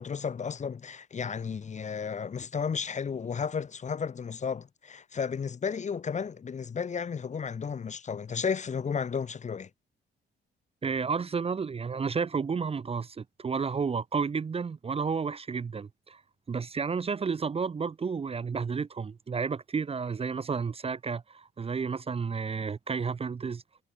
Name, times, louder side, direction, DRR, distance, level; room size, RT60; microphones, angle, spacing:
voice 1, 0.0-9.7, left 6 dB, 35° left, 1.1 m, -33 dB
voice 2, 10.8-16.2 16.5-23.6, right 5 dB, 30° right, 0.7 m, -31 dB
cardioid pair, 90°, 20 cm